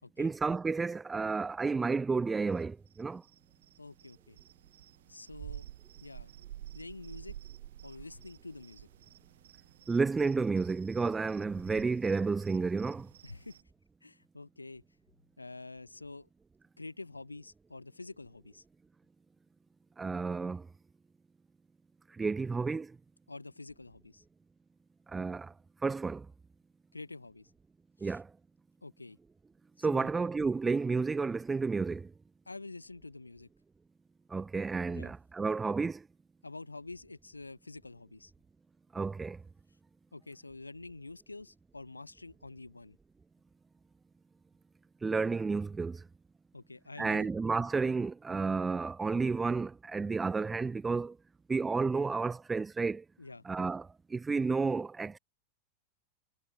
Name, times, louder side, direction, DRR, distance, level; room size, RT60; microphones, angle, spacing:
voice 1, 0.2-3.2 9.9-13.1 20.0-20.7 22.1-23.0 25.1-25.5 25.8-26.3 28.0-28.3 29.8-32.1 34.3-36.1 38.9-39.4 45.0-46.0 47.0-51.2 51.5-53.0 53.4-55.2, right 4 dB, 15° right, 1.2 m, -31 dB
sound 1, 2.9-13.6, right 12 dB, 60° right, 2.9 m, -51 dB
voice 2, 3.8-4.4 5.1-5.7 6.0-6.3 6.7-7.4 7.8-8.9 13.2-13.6 14.0-14.8 15.4-16.3 16.8-18.6 23.3-24.2 26.9-27.5 28.0-28.2 28.8-29.2 29.8-30.1 32.5-33.5 34.9-35.1 36.4-38.3 40.1-43.0 46.5-47.3 53.2-53.4, left 3 dB, 80° left, 3.5 m, -47 dB
figure-of-eight pair, 90°, 0 cm